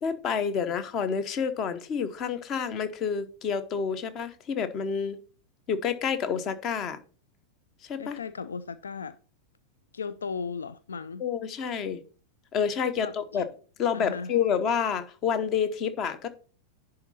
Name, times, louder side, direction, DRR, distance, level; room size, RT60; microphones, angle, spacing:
voice 1, 0.0-5.2 5.7-7.0 7.8-8.2 11.2-12.0 12.5-13.4 13.8-16.3, left 7 dB, 35° left, 1.0 m, -29 dB
voice 2, 8.0-9.2 9.9-11.2 13.0-13.4 13.9-14.3, left 5 dB, 70° left, 0.4 m, -36 dB
10.5 x 3.8 x 5.5 m
figure-of-eight pair, 90°, 0 cm